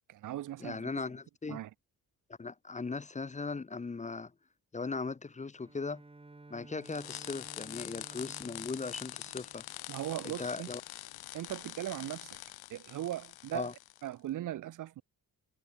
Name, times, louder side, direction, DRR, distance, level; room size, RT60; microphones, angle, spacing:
voice 1, 0.1-0.9 1.5-1.7 9.9-10.7 11.3-12.4 12.7-13.7 14.0-15.0, right 13 dB, 55° right, 0.5 m, -38 dB
voice 2, 0.6-1.6 2.4-4.3 4.7-6.0 6.5-9.6 10.2-10.8 13.5-13.7, left 4 dB, 20° left, 0.7 m, -38 dB
Bowed string instrument, 5.6-10.2, right 2 dB, 15° right, 1.8 m, -55 dB
sound 1, 6.8-14.1, left 16 dB, 85° left, 0.6 m, -45 dB
cardioid pair, 120°, 36 cm